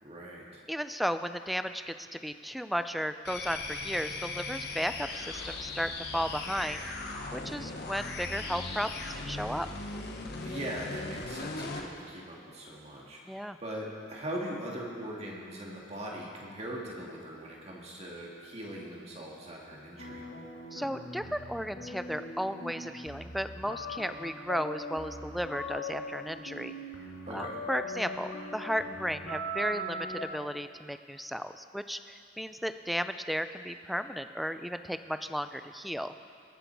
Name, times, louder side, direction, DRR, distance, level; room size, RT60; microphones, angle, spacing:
voice 1, 0.0-0.6 10.4-20.2 27.3-27.6, right 1 dB, 35° right, -3 dB, 2.2 m, -40 dB
voice 2, 0.7-6.8 7.3-9.7 13.3-13.6 20.7-26.7 27.3-36.1, equal, ahead, 10 dB, 0.4 m, -34 dB
sound 1, 3.2-11.9, left 3 dB, 60° left, 1.2 m, -38 dB
sound 2, 20.0-30.3, equal, 85° left, 1.9 m, -40 dB
22.0 x 7.9 x 4.7 m, 2.3 s
head